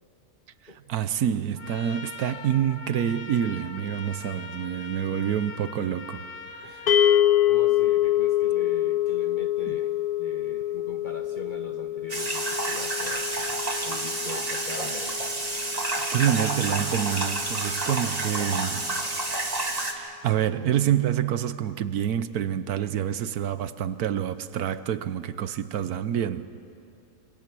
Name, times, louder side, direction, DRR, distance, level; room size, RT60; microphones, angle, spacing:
voice 1, 0.9-6.2 9.7-9.8 16.1-18.9 20.0-26.5, right 10 dB, 80° right, 13 dB, 1.3 m, -27 dB
Trumpet, 1.6-7.3, left 3 dB, 60° left, 1.6 m, -42 dB
voice 2, 6.6-13.3 13.8-15.5 16.6-16.7, left 2 dB, 35° left, 6 dB, 1.1 m, -42 dB
sound 1, 6.9-17.2, left 12 dB, 85° left, 1.4 m, -26 dB
sound 2, 12.1-19.9, right 2 dB, 25° right, 1.8 m, -29 dB
27.0 x 25.5 x 6.1 m, 2.7 s
omnidirectional pair, 1.6 m